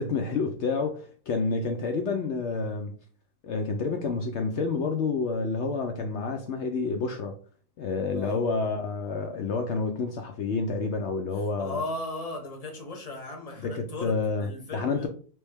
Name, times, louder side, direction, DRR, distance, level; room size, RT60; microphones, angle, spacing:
voice 1, 0.0-2.9 3.4-7.3 7.8-11.8 13.6-15.1, left 4 dB, 65° left, 0.7 m, -29 dB
voice 2, 11.6-15.1, left 2 dB, 35° left, 0.7 m, -36 dB
3.3 x 3.0 x 3.3 m
omnidirectional pair, 1.6 m